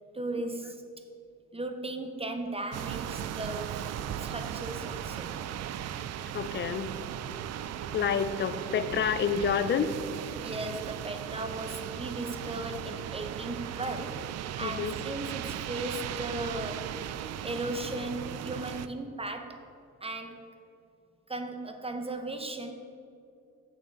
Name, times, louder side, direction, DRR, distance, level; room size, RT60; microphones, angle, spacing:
voice 1, 0.1-0.8 1.5-3.9 4.2-5.3 10.3-14.3 14.6-16.9 17.4-19.7 20.0-20.5 21.3-22.7, right 2 dB, 20° right, 6 dB, 0.7 m, -37 dB
sound 1, 2.7-18.9, right 10 dB, 60° right, 0.4 m, -37 dB
voice 2, 6.3-6.9 7.9-9.9 14.6-14.9, left 7 dB, 40° left, 11 dB, 0.5 m, -28 dB
6.8 x 5.6 x 6.5 m, 2.5 s
cardioid pair, 90°, 30 cm